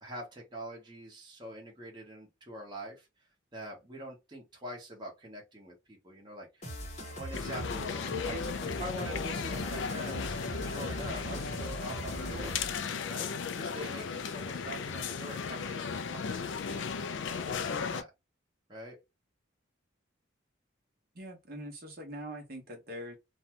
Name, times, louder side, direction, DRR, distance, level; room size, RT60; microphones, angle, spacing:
voice 1, 0.0-3.1 3.5-6.7 7.1-10.4 10.7-12.6 13.1-16.8 17.3-18.1 18.7-19.0, right 1 dB, 20° right, 0.9 m, -44 dB
sound 1, 6.6-12.9, equal, 35° left, 0.8 m, -41 dB
sound 2, 7.3-18.0, left 5 dB, 65° left, 0.4 m, -36 dB
voice 2, 21.1-23.1, equal, 50° right, 0.9 m, -43 dB
2.6 x 2.3 x 2.9 m
head